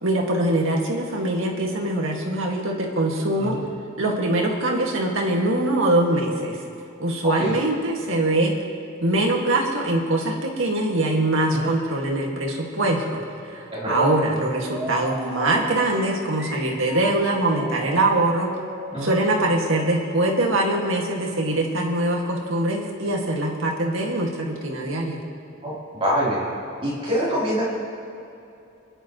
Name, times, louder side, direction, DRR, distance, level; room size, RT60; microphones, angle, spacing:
voice 1, 0.0-3.6 4.0-6.6 7.0-8.5 9.0-13.2 13.5-18.5 19.0-25.2, right 1 dB, 70° right, -1 dB, 2.0 m, -23 dB
voice 2, 7.2-7.6 11.5-11.7 13.7-14.1 18.9-19.2 25.6-26.5 26.8-27.7, equal, 30° right, -7 dB, 3.6 m, -25 dB
sound 1, 14.6-21.3, equal, 10° right, 2.8 m, -37 dB
25.5 x 10.5 x 3.1 m, 2.8 s
head